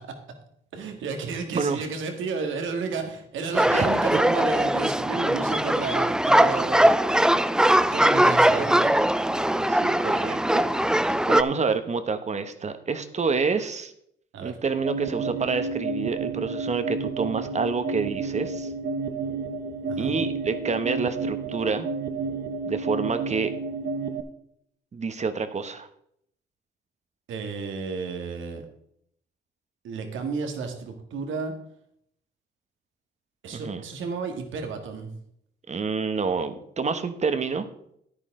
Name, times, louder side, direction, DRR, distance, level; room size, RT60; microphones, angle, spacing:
voice 1, 0.7-6.9 7.9-8.9 14.3-14.6 19.9-20.1 27.3-28.6 29.8-31.5 33.4-35.1, right 4 dB, 80° right, 5 dB, 1.8 m, -32 dB
voice 2, 1.5-1.8 3.7-3.9 9.6-10.7 11.1-13.9 14.4-18.7 20.0-21.9 22.6-23.5 24.9-25.9 33.5-33.8 35.7-37.6, right 4 dB, 35° right, 10 dB, 1.0 m, -28 dB
sound 1, 3.5-11.4, right 1 dB, 5° right, 0.4 m, -21 dB
sound 2, 14.8-24.2, right 4 dB, 60° right, 0.9 m, -31 dB
10.0 x 9.7 x 3.7 m, 0.72 s
cardioid pair, 90°, 20 cm